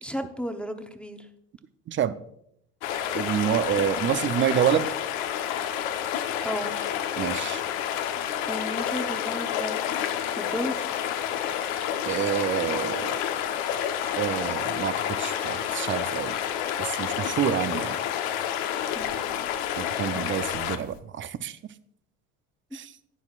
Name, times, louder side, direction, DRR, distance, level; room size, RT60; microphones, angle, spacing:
voice 1, 0.0-1.3 6.4-6.7 8.5-9.8 10.4-10.8 18.9-19.4, equal, 5° left, 0.9 m, -34 dB
sound 1, 2.8-21.0, left 9 dB, 70° left, 1.0 m, -29 dB
voice 2, 3.1-4.9 7.2-7.6 12.1-13.2 14.2-16.4 16.8-18.0 19.8-21.6 22.7-22.9, right 10 dB, 30° right, 0.6 m, -28 dB
12.0 x 9.6 x 2.4 m
hypercardioid pair, 80°, 40 cm